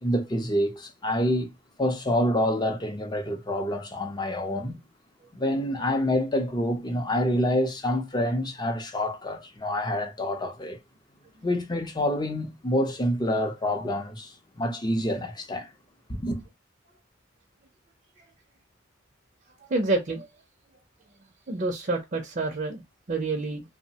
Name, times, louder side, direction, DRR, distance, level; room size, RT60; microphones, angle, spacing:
voice 1, 0.0-1.5 1.8-4.8 5.3-10.8 11.4-15.7 16.1-16.4, left 1 dB, 20° left, 0.5 m, -27 dB
voice 2, 19.7-20.3 21.5-23.6, right 3 dB, 40° right, 0.5 m, -28 dB
2.9 x 2.0 x 2.7 m
head